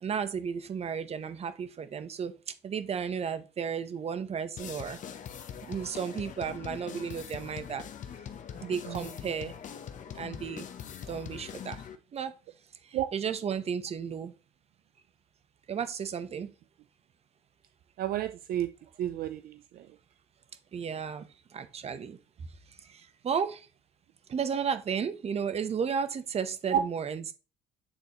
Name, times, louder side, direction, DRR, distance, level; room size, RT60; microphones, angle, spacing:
voice 1, 0.0-2.3 2.6-5.0 5.7-7.8 8.6-9.5 10.2-10.6 11.1-11.8 12.1-12.3 13.1-14.3 15.7-16.5 20.7-21.3 21.5-22.2 23.2-23.6 24.3-27.3, right 7 dB, 40° right, 0.8 m, -33 dB
sound 1, 4.6-12.0, left 8 dB, 50° left, 0.8 m, -42 dB
voice 2, 18.0-18.7 19.0-19.9 26.7-26.8, right 11 dB, 60° right, 0.5 m, -31 dB
8.9 x 3.9 x 3.0 m
cardioid pair, 110°, 17 cm